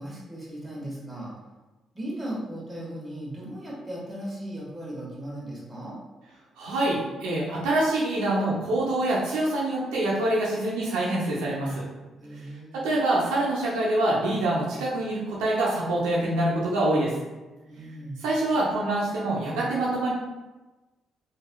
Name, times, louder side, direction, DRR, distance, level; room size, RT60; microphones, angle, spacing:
voice 1, 0.0-1.3 1.9-6.0 12.2-12.8 17.7-18.2, right 1 dB, 15° right, -5 dB, 1.3 m, -37 dB
voice 2, 6.6-11.8 12.7-17.1 18.2-20.1, right 1 dB, 85° right, -5 dB, 0.6 m, -25 dB
3.0 x 2.6 x 2.2 m, 1.1 s
supercardioid pair, 60°, 0 cm